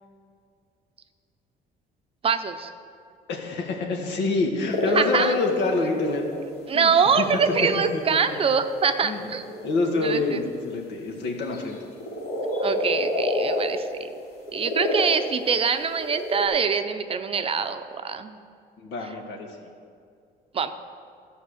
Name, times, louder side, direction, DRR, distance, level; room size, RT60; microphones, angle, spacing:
voice 1, 2.2-2.7 4.9-5.3 6.7-9.4 10.0-10.4 12.6-14.1 14.5-18.4 20.5-20.7, right 6 dB, 35° right, 9 dB, 0.6 m, -24 dB
voice 2, 3.3-6.2 6.7-6.9 7.2-7.3 8.3-8.4 9.0-9.3 9.6-11.8 18.8-19.7, left 3 dB, 85° left, 1 dB, 1.7 m, -26 dB
sound 1, 4.7-6.4 7.2-7.9 8.3-10.3 11.3-13.8 14.2-15.6 15.9-16.5, left 1 dB, 70° left, 2.6 m, -29 dB
14.0 x 5.4 x 6.4 m, 2.3 s
cardioid pair, 110°, 17 cm